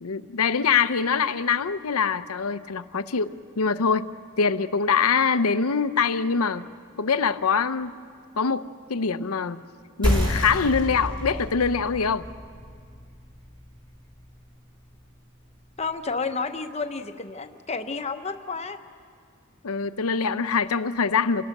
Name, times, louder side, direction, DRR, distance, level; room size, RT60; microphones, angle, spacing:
voice 1, 0.0-4.1 4.4-6.7 7.0-8.0 8.4-9.6 10.0-12.3 19.6-21.4, left 5 dB, 85° left, 12 dB, 0.7 m, -24 dB
sound 1, 10.0-15.2, equal, 20° right, 3.6 m, -30 dB
voice 2, 15.8-18.8, left 4 dB, 30° left, 7 dB, 0.9 m, -31 dB
29.0 x 18.0 x 6.6 m, 2.1 s
head